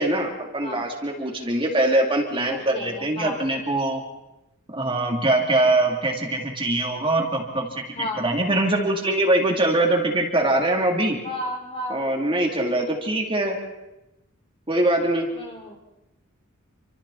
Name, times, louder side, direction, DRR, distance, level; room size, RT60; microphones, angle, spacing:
voice 1, 0.0-4.0 4.7-11.2 11.9-13.6 14.7-15.3, right 1 dB, 25° right, 1 dB, 3.4 m, -23 dB
voice 2, 2.4-3.5 7.9-8.2 11.2-12.0 15.3-15.8, left 1 dB, 25° left, 2 dB, 4.2 m, -33 dB
29.0 x 26.0 x 4.4 m, 0.96 s
head